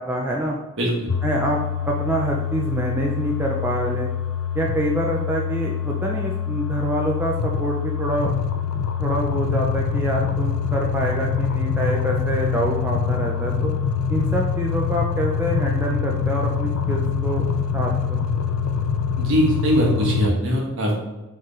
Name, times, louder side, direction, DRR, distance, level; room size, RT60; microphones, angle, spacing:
voice 1, 0.0-0.6 1.2-4.1 4.5-8.3 9.0-13.7 14.1-17.5 17.7-18.4, right 1 dB, 10° right, -2 dB, 0.4 m, -26 dB
voice 2, 0.8-1.1 19.2-21.0, equal, 60° right, -1 dB, 1.1 m, -21 dB
sound 1, 1.1-20.3, left 6 dB, 65° left, 0.3 m, -25 dB
4.4 x 3.9 x 3.1 m, 1.1 s
head